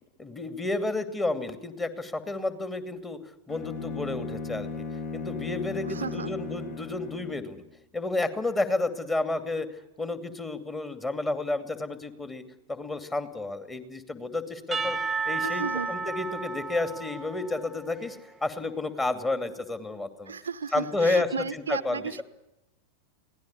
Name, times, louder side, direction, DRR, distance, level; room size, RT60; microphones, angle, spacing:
voice 1, 0.2-3.2 3.5-4.8 5.1-7.6 7.9-9.7 10.0-12.4 12.7-15.0 15.2-20.3 20.7-22.2, left 2 dB, 15° left, 10 dB, 2.6 m, -31 dB
Bowed string instrument, 3.5-7.5, left 4 dB, 45° left, 2.6 m, -36 dB
voice 2, 5.8-6.3 15.4-15.9 20.3-22.2, right 6 dB, 70° right, 15 dB, 0.8 m, -34 dB
Percussion / Church bell, 14.7-18.4, right 4 dB, 10° right, 1.0 m, -33 dB
24.0 x 17.5 x 9.7 m, 0.94 s
figure-of-eight pair, 90°, 0 cm